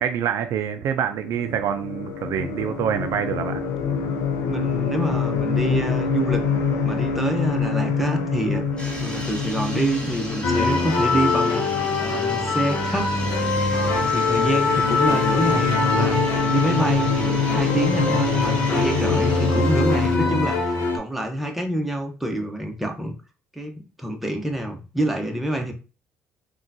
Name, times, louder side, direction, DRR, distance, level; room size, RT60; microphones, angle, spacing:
voice 1, 0.0-3.6, right 8 dB, 60° right, 0.3 m, -26 dB
sound 1, 1.0-20.5, left 5 dB, 70° left, 0.5 m, -26 dB
voice 2, 4.5-6.4 6.8-8.6 9.0-11.6 12.0-13.1 13.7-16.2 16.5-23.1 23.5-25.7, right 1 dB, 5° right, 0.9 m, -27 dB
sound 2, 8.8-20.2, equal, 15° left, 1.3 m, -35 dB
sound 3, 10.4-21.0, left 3 dB, 50° left, 0.9 m, -23 dB
3.6 x 2.2 x 2.7 m
hypercardioid pair, 55°, 6 cm